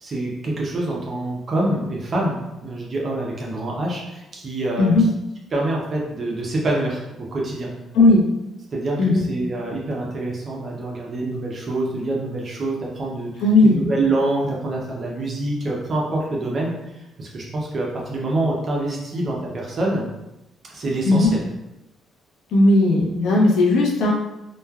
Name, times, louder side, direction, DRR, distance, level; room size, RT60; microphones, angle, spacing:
voice 1, 0.0-4.9 5.5-7.7 8.7-13.3 13.6-16.7 17.2-20.1 20.7-21.4, right 2 dB, 40° right, -2 dB, 0.5 m, -26 dB
voice 2, 13.4-13.8 21.1-21.3 22.5-24.1, left 2 dB, 85° left, -1 dB, 0.6 m, -16 dB
3.1 x 2.1 x 2.2 m, 0.93 s
cardioid pair, 120°, 0 cm